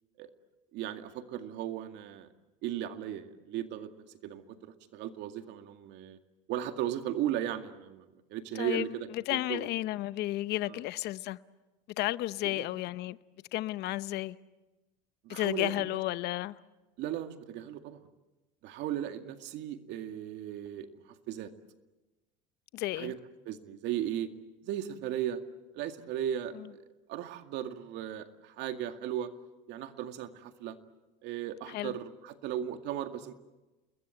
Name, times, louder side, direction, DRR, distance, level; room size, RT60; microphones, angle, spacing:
voice 1, 0.7-2.3 2.6-6.2 6.5-9.7 10.7-10.8 12.4-12.7 15.2-16.0 17.0-18.0 18.6-20.9 21.3-21.5 22.9-23.2 23.5-24.3 24.6-25.4 25.7-26.8 27.1-29.3 29.7-30.8 31.2-33.3, right 11 dB, 60° right, 2.1 m, -36 dB
voice 2, 9.1-11.4 12.0-13.2 13.5-14.4 15.3-16.6 22.7-23.1 31.7-31.9, left 16 dB, 55° left, 0.8 m, -32 dB
29.5 x 21.5 x 7.8 m
supercardioid pair, 100°, 20 cm